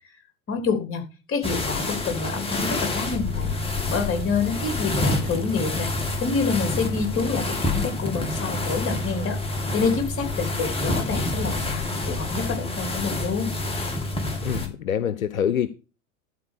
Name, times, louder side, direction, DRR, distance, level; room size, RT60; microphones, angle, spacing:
voice 1, 0.5-1.0 1.3-3.6 3.9-5.9 6.2-9.4 9.7-13.6, left 5 dB, 30° left, 3.4 m, -27 dB
sound 1, 1.4-14.7, left 2 dB, 15° left, 2.4 m, -28 dB
voice 2, 14.4-15.7, left 9 dB, 75° left, 0.7 m, -25 dB
12.0 x 4.5 x 6.5 m
figure-of-eight pair, 85°, 41 cm